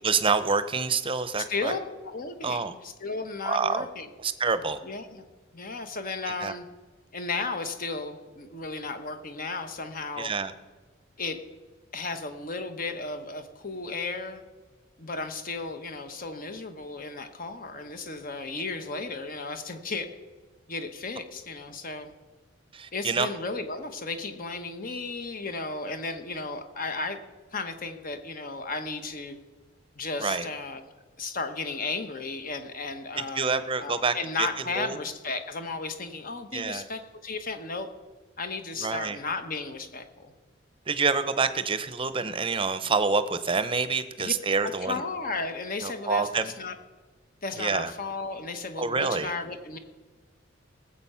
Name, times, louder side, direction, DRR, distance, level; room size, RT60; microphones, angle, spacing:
voice 1, 0.0-1.7 2.4-2.7 3.4-3.9 4.2-4.8 6.4-6.5 10.2-10.5 22.7-23.3 30.2-30.5 33.3-34.5 34.7-35.0 36.5-36.8 38.8-39.2 40.9-45.0 45.8-46.5 47.6-47.9 48.8-49.3, right 4 dB, 30° right, 12 dB, 0.7 m, -27 dB
voice 2, 1.4-4.1 4.8-5.2 5.5-6.7 7.1-10.3 11.2-11.4 11.9-14.4 15.0-20.1 20.7-22.1 22.9-27.2 27.5-29.4 29.9-30.8 31.2-37.9 38.4-40.3 44.2-44.3 44.6-46.7 47.4-49.8, left 3 dB, 45° left, 8 dB, 1.2 m, -34 dB
19.0 x 7.8 x 5.7 m, 1.3 s
head